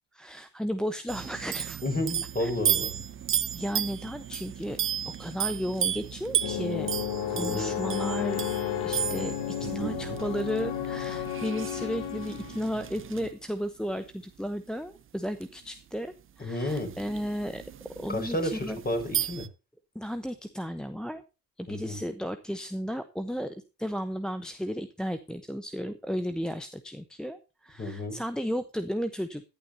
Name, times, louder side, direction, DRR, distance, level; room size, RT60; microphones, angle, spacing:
voice 1, 0.1-1.8 2.4-2.5 3.5-4.8 5.1-6.9 7.3-8.5 8.8-17.6 18.0-18.8 19.9-21.2 21.6-29.4, equal, ahead, 9 dB, 0.9 m, -34 dB
sound 1, 1.1-13.3 15.4-15.5 16.7-19.5, right 9 dB, 25° right, 0.7 m, -34 dB
voice 2, 1.8-3.0 7.3-7.7 16.4-16.9 18.1-19.5 21.7-22.0 27.8-28.2, left 1 dB, 20° left, 4 dB, 5.4 m, -31 dB
sound 2, 6.4-12.8, left 10 dB, 50° left, 1.9 m, -32 dB
17.0 x 11.5 x 2.8 m, 0.30 s
hypercardioid pair, 65°, 50 cm